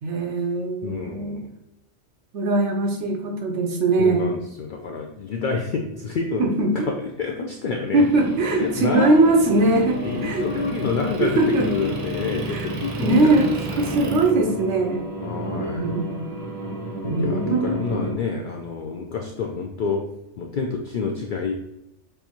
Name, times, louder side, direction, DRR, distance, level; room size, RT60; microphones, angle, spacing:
voice 1, 0.0-1.4 2.3-4.3 6.4-6.9 7.9-10.4 11.2-11.7 12.5-12.7 13.0-13.5 13.8-15.0 15.7-16.4 17.0-17.8, right 2 dB, 80° right, 2 dB, 1.0 m, -21 dB
voice 2, 0.8-1.5 4.0-6.4 7.2-8.1 8.6-9.4 10.0-13.9 15.2-15.9 17.2-20.0 20.4-21.6, left 4 dB, 60° left, 2 dB, 0.5 m, -28 dB
Motor vehicle (road) / Engine, 8.0-14.3, right 2 dB, 45° right, 0.5 m, -36 dB
sound 1, 8.1-18.1, equal, 20° left, 1.3 m, -32 dB
6.8 x 2.7 x 2.9 m, 0.89 s
omnidirectional pair, 1.2 m